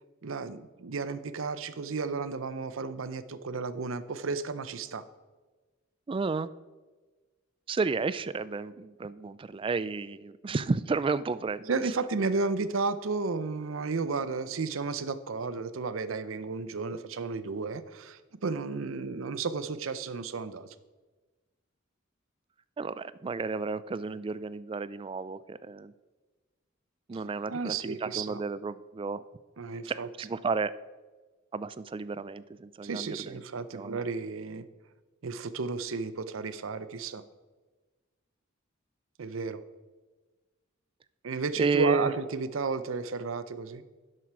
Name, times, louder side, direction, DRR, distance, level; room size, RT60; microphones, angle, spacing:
voice 1, 0.2-5.0 11.7-20.7 27.5-28.4 29.6-30.1 32.8-34.7 35.2-37.2 39.2-39.6 41.2-43.8, right 4 dB, 80° right, 13 dB, 0.6 m, -33 dB
voice 2, 6.1-6.5 7.7-11.7 22.8-25.9 27.1-29.2 29.9-30.7 31.5-33.4 33.7-34.0 41.6-42.1, right 4 dB, 25° right, 16 dB, 0.3 m, -32 dB
11.0 x 7.7 x 4.7 m, 1.3 s
head